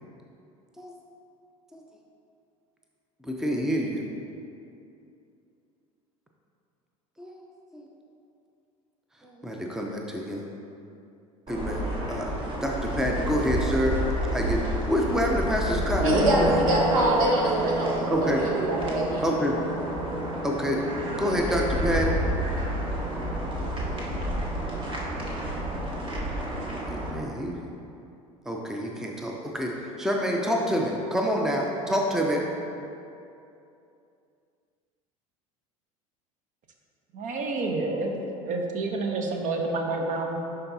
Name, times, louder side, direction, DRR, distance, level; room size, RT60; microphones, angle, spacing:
voice 1, 3.2-4.0 7.2-7.4 7.7-7.8 9.2-10.5 11.5-12.3 12.6-14.0 14.3-16.6 18.1-18.4 19.2-19.6 20.4-20.8 21.2-22.2 26.9-27.6 28.5-32.4, equal, 5° right, 0 dB, 0.7 m, -27 dB
sound 1, 11.5-27.1, equal, 30° right, 1.3 m, -29 dB
voice 2, 16.0-19.3, right 1 dB, 65° right, -2 dB, 1.2 m, -25 dB
voice 3, 37.1-38.2 38.4-40.4, right 3 dB, 45° right, 2 dB, 0.9 m, -29 dB
11.0 x 4.0 x 2.8 m, 2.7 s
figure-of-eight pair, 70°, 19 cm